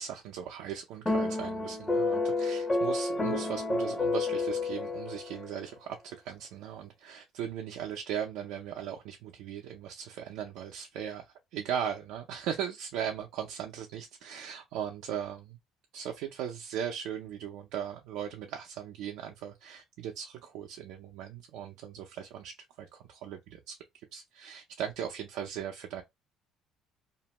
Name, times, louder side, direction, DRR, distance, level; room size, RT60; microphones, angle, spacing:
voice 1, 0.0-11.3 11.5-15.6 15.9-23.8 24.1-26.0, right 9 dB, 80° right, 0.5 m, -38 dB
sound 1, 1.1-5.5, left 3 dB, 15° left, 0.5 m, -30 dB
2.5 x 2.1 x 2.9 m
cardioid pair, 155°, 0 cm